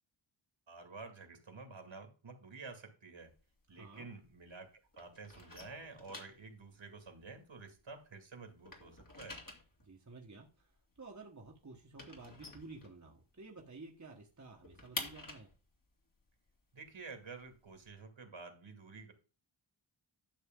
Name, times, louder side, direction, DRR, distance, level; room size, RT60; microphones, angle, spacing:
voice 1, 0.7-3.3 3.7-4.7 5.0-9.4 16.7-19.1, right 4 dB, 70° right, 5 dB, 2.4 m, -50 dB
sound 1, 3.2-4.7 4.9-8.2 8.4-13.5 13.8-13.9 14.2-17.9, left 2 dB, 40° left, 2.4 m, -49 dB
voice 2, 3.7-4.1 9.8-15.5, right 3 dB, 35° right, 0 dB, 1.5 m, -52 dB
11.5 x 6.5 x 3.8 m, 0.34 s
wide cardioid pair, 80°, 49 cm